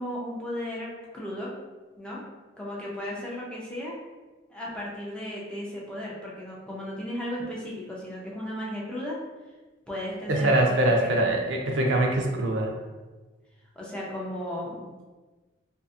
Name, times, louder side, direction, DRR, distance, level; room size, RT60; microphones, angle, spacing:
voice 1, 0.0-1.5 2.0-2.2 2.6-4.0 4.5-9.2 9.9-11.2 13.8-15.0, left 1 dB, 5° left, -5 dB, 0.5 m, -35 dB
voice 2, 10.3-12.7, right 1 dB, 80° right, 1 dB, 0.5 m, -23 dB
2.6 x 2.4 x 2.4 m, 1.2 s
head